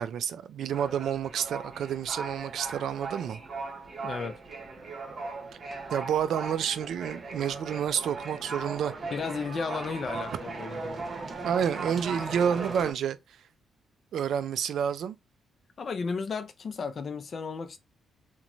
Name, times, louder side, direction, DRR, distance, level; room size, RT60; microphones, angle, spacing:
voice 1, 0.0-3.4 5.9-8.9 11.4-13.2 14.1-15.2, right 8 dB, 65° right, 0.3 m, -29 dB
sound 1, 0.7-12.9, right 3 dB, 35° right, 0.8 m, -38 dB
voice 2, 4.0-4.4 9.1-11.1 15.8-17.8, left 5 dB, 35° left, 0.4 m, -34 dB
3.0 x 2.1 x 2.6 m
cardioid pair, 155°, 0 cm